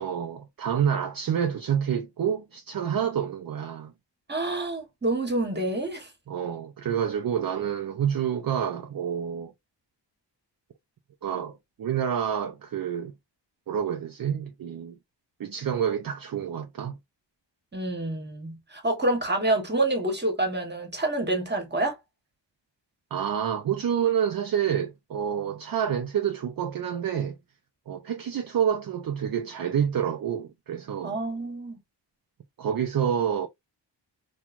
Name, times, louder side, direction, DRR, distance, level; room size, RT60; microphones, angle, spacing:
voice 1, 0.0-3.9 6.3-9.5 11.2-13.1 13.7-15.0 15.4-17.0 23.1-27.4 27.9-31.2 32.6-33.5, right 8 dB, 50° right, 0.5 m, -28 dB
voice 2, 4.3-6.1 17.7-22.0 31.0-31.8, right 2 dB, 25° right, 1.2 m, -27 dB
3.0 x 2.3 x 2.4 m
wide cardioid pair, 80°, 44 cm